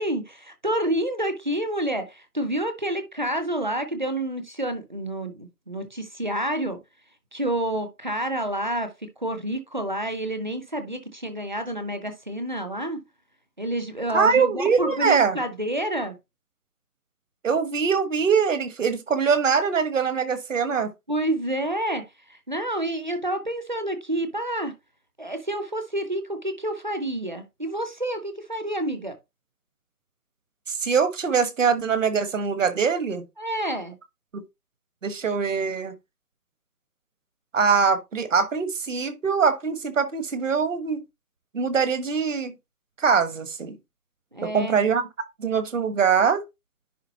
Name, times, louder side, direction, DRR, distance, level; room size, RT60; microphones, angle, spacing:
voice 1, 0.0-6.8 7.3-8.9 9.2-13.0 13.6-16.2 21.1-24.7 25.2-29.1 33.4-34.0 44.3-44.8, right 1 dB, 30° right, 0.6 m, -28 dB
voice 2, 14.1-15.4 17.4-20.9 30.7-33.2 34.3-34.4 35.0-35.9 37.5-41.0 41.5-42.5 43.0-43.8 44.4-45.0 45.4-46.4, right 6 dB, 50° right, 1.4 m, -23 dB
10.5 x 3.6 x 2.9 m
figure-of-eight pair, 150°, 49 cm